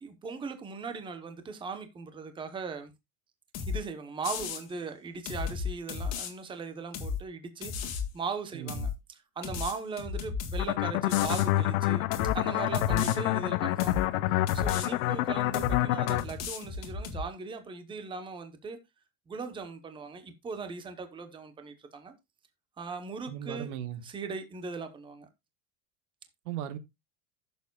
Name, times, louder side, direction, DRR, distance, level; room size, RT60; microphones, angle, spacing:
voice 1, 0.0-2.9 3.7-12.1 12.3-18.8 19.3-22.1 22.8-23.7 24.0-25.3, right 4 dB, 10° right, 0.9 m, -39 dB
sound 1, 3.5-3.8 4.2-4.6 5.3-6.3 6.9-7.2 7.6-8.1 8.7-9.0 9.4-10.7 11.1-11.5 12.1-12.4 12.7-13.2 13.8-14.1 14.5-14.9 15.5-15.8 16.1-17.2, left 6 dB, 35° left, 1.8 m, -34 dB
voice 2, 8.5-8.9 12.9-13.3 23.3-24.0 26.4-26.8, right 10 dB, 85° right, 1.4 m, -37 dB
sound 2, 10.6-16.2, left 16 dB, 75° left, 0.7 m, -27 dB
15.0 x 7.0 x 2.3 m
supercardioid pair, 160°, 43 cm